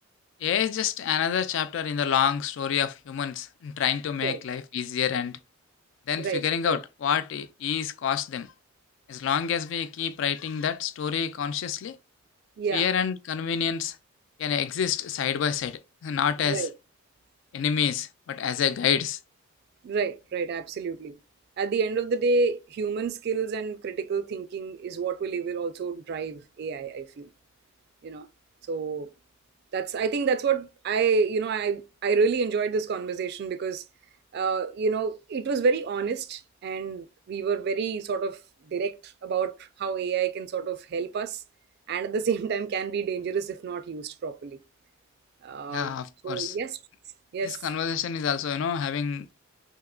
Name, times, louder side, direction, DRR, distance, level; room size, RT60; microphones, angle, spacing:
voice 1, 0.4-5.4 6.1-8.5 9.1-12.0 12.7-14.0 14.4-16.7 17.5-19.2 45.7-46.6 47.4-49.3, left 8 dB, 65° left, 0.3 m, -28 dB
voice 2, 6.2-6.8 12.6-12.9 16.4-16.7 19.8-21.1 21.6-27.3 28.0-28.3 28.7-29.1 29.7-33.8 34.3-38.4 38.6-41.4 41.9-44.6 45.4-45.9 46.2-46.8 47.3-47.6, right 5 dB, 55° right, 0.3 m, -28 dB
3.5 x 2.8 x 2.3 m
head